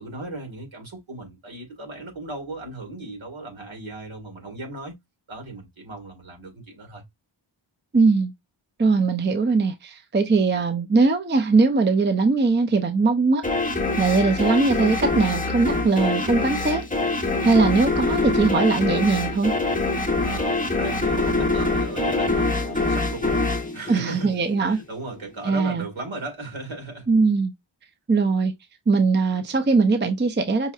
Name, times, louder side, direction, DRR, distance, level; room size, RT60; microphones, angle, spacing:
voice 1, 0.0-4.9 5.3-7.0 20.2-24.3 24.6-27.1, right 2 dB, 65° right, 2.0 m, -36 dB
voice 2, 7.9-8.3 8.8-13.4 14.0-19.5 23.9-24.8 25.4-25.9 27.1-27.5 28.1-28.5 28.9-30.7, right 4 dB, 25° right, 0.5 m, -20 dB
sound 1, 13.4-24.7, left 2 dB, 15° left, 0.9 m, -24 dB
5.5 x 2.6 x 2.4 m
wide cardioid pair, 85°, 50 cm